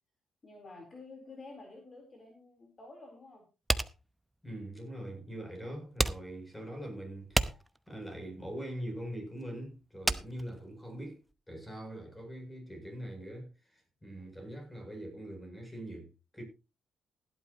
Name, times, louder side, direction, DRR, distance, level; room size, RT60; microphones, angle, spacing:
voice 1, 0.4-3.4 14.2-14.3, left 3 dB, 35° left, 4.0 m, -50 dB
sound 1, 3.7-11.3, right 1 dB, 5° right, 0.9 m, -34 dB
voice 2, 4.4-7.6 7.9-16.1 16.3-16.4, right 1 dB, 10° left, 7.8 m, -43 dB
16.5 x 11.5 x 3.1 m
cardioid pair, 90°, 0 cm